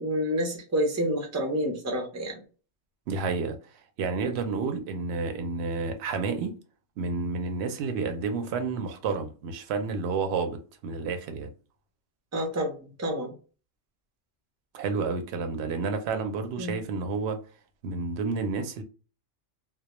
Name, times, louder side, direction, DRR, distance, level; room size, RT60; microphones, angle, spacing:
voice 1, 0.0-2.4 12.3-13.3 16.6-16.8, equal, 25° right, 0.4 m, -29 dB
voice 2, 3.1-3.6 4.0-6.6 7.0-11.5 14.7-17.4 17.8-18.8, right 4 dB, 65° right, 0.8 m, -30 dB
2.2 x 2.1 x 2.9 m
omnidirectional pair, 1.3 m